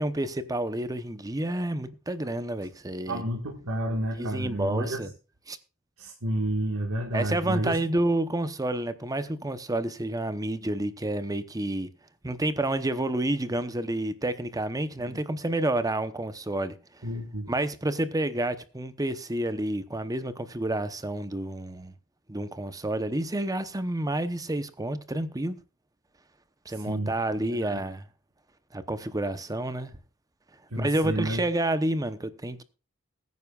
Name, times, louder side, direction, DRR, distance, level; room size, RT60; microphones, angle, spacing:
voice 1, 0.0-3.2 4.1-5.1 5.5-5.6 7.1-11.9 12.2-17.1 17.5-21.9 22.3-25.6 26.6-28.1 28.7-29.9 30.8-32.6, right 1 dB, 15° right, 0.9 m, -29 dB
voice 2, 3.1-5.0 6.0-7.8 15.0-15.2 17.0-17.5 26.7-27.1 27.5-27.8 30.7-31.4, right 1 dB, 75° right, 1.8 m, -30 dB
21.0 x 9.5 x 2.4 m
head